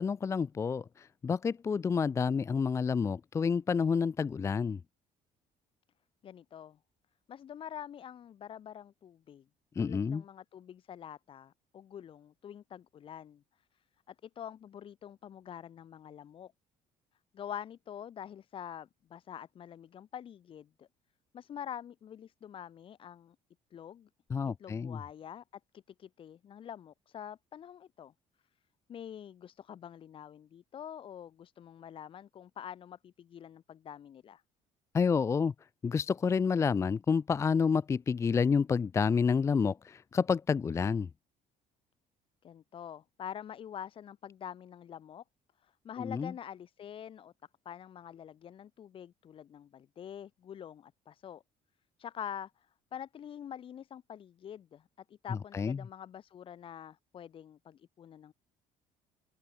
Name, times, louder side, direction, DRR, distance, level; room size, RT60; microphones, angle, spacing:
voice 1, 0.0-4.8 9.8-10.2 24.3-25.0 34.9-35.5 35.8-41.1 46.0-46.3 55.5-55.8, left 5 dB, 20° left, 0.6 m, -29 dB
voice 2, 6.2-6.8 7.3-9.4 9.8-13.4 14.1-16.5 17.3-20.9 21.3-23.4 23.7-24.1 24.6-25.4 25.7-28.1 28.9-34.4 42.4-45.2 45.6-47.3 47.7-51.4 52.0-52.7 52.9-58.3, left 9 dB, 40° left, 5.7 m, -46 dB
cardioid pair, 165°, 14 cm